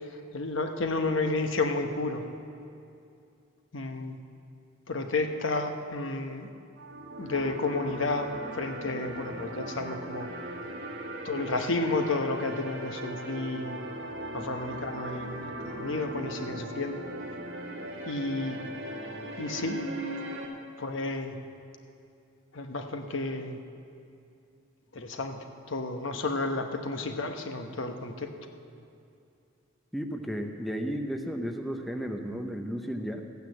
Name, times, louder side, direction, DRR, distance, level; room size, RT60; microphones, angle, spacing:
voice 1, 0.3-2.2 3.7-4.2 4.9-6.5 7.2-10.3 11.2-13.8 14.3-17.0 18.1-18.6 19.4-19.8 20.8-21.3 22.5-23.6 24.9-25.4 25.7-28.3, left 3 dB, 70° left, 5 dB, 1.0 m, -31 dB
sound 1, 6.8-20.5, right 1 dB, 75° right, 1.6 m, -39 dB
voice 2, 29.9-33.2, equal, ahead, 3 dB, 0.7 m, -33 dB
14.0 x 9.5 x 7.8 m, 2.6 s
head